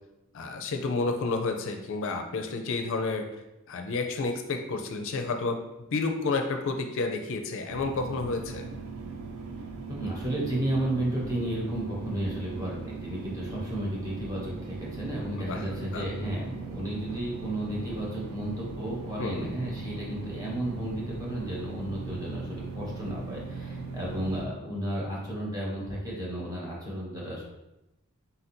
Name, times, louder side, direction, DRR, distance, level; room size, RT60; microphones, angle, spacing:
voice 1, 0.3-3.2 3.7-5.6 5.9-8.7 15.4-15.7 15.9-16.0 19.2-19.5, left 3 dB, 65° left, 5 dB, 0.4 m, -30 dB
sound 1, 7.7-24.4, right 4 dB, 80° right, 0.5 m, -39 dB
voice 2, 9.9-27.4, right 1 dB, 15° right, -4 dB, 1.2 m, -33 dB
4.0 x 2.6 x 4.3 m, 0.95 s
head